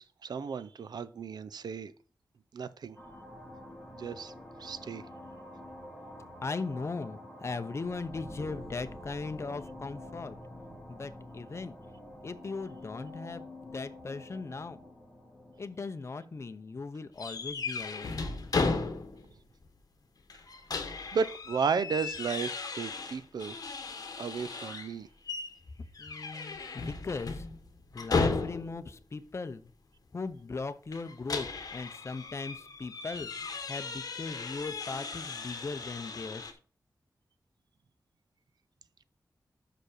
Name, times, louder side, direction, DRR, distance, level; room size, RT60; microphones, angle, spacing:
voice 1, 0.0-1.9 2.5-3.0 3.9-4.3 4.6-5.0 21.1-23.6 24.2-25.1, right 6 dB, 75° right, 0.5 m, -34 dB
sound 1, 2.9-17.1, left 1 dB, 5° left, 2.0 m, -47 dB
voice 2, 6.4-10.4 10.9-11.8 12.2-14.8 15.6-18.2 26.0-27.4 27.9-29.7 30.1-33.3 33.7-36.5, left 4 dB, 40° left, 0.7 m, -38 dB
sound 2, 17.2-19.3 19.7-19.8 20.3-24.9 25.3-25.6 25.9-28.9 30.9-36.5, left 4 dB, 60° left, 1.1 m, -35 dB
6.0 x 5.0 x 6.6 m
wide cardioid pair, 140°, 7 cm